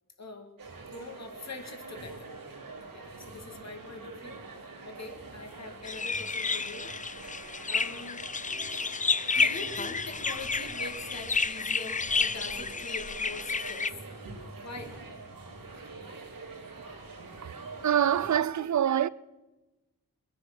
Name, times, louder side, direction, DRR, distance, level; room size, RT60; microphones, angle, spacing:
voice 1, 0.2-0.5 0.9-2.3 2.9-6.9 7.7-8.2 9.3-14.0 14.6-14.9, left 3 dB, 50° left, 2.1 m, -44 dB
sound 1, 0.6-18.4, right 3 dB, 85° right, 3.0 m, -45 dB
sound 2, 5.8-13.9, left 4 dB, 25° left, 0.4 m, -31 dB
voice 2, 17.8-19.1, right 10 dB, 60° right, 0.5 m, -25 dB
22.5 x 9.4 x 6.0 m
wide cardioid pair, 125°, 33 cm